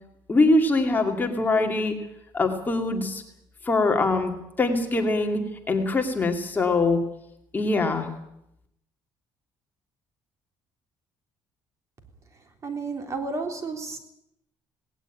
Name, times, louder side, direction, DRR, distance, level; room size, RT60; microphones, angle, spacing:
voice 1, 0.3-2.0 2.3-3.2 3.6-4.3 4.6-5.4 5.7-7.0 7.5-8.1, left 2 dB, 20° left, 3 dB, 2.4 m, -23 dB
voice 2, 12.6-14.0, right 3 dB, 35° right, 5 dB, 3.5 m, -31 dB
18.5 x 18.5 x 9.1 m, 0.80 s
cardioid pair, 140°, 9 cm